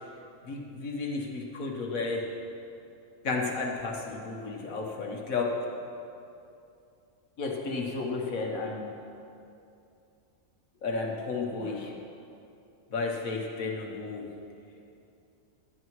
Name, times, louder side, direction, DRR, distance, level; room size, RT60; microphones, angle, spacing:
voice 1, 0.4-2.3 3.2-5.6 7.4-8.9 10.8-11.9 12.9-14.3, left 3 dB, 80° left, 0 dB, 1.7 m, -32 dB
15.0 x 12.0 x 3.1 m, 2.6 s
omnidirectional pair, 1.4 m